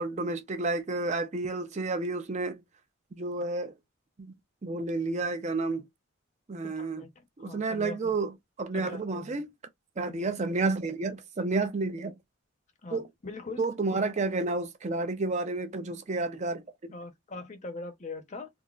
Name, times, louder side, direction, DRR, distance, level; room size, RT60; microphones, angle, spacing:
voice 1, 0.0-2.6 3.2-3.7 4.2-4.3 4.6-5.9 6.5-7.0 7.4-8.3 8.6-9.5 10.0-12.2 12.9-13.1 13.6-16.6, right 3 dB, 35° right, 0.5 m, -30 dB
voice 2, 6.6-7.1 7.4-8.1 8.7-9.4 10.1-10.3 12.8-13.6 13.9-14.0 16.9-18.5, left 3 dB, 35° left, 0.7 m, -41 dB
3.9 x 2.0 x 2.3 m
head